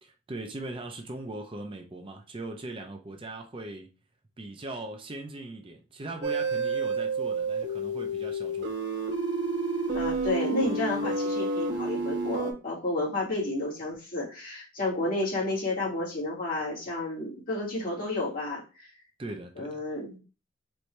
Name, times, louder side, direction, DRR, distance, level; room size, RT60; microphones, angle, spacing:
voice 1, 0.0-3.9 4.4-8.7 19.2-19.8, right 2 dB, 30° right, 0.5 m, -40 dB
sound 1, 6.2-12.5, right 2 dB, 70° right, 1.0 m, -30 dB
voice 2, 9.9-18.9 19.6-20.2, left 2 dB, 50° left, 2.1 m, -31 dB
4.5 x 2.7 x 3.2 m
head